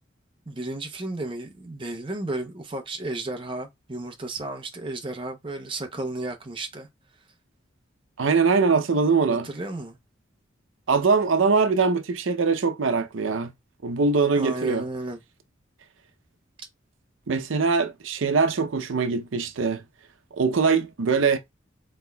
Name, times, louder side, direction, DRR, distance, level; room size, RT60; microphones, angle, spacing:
voice 1, 0.5-6.9 9.4-10.0 14.4-15.2, right 2 dB, 25° right, 0.7 m, -33 dB
voice 2, 8.2-9.5 10.9-13.5 13.8-14.8 17.3-19.8 20.3-21.4, right 4 dB, 85° right, 0.6 m, -22 dB
4.3 x 4.1 x 2.2 m
head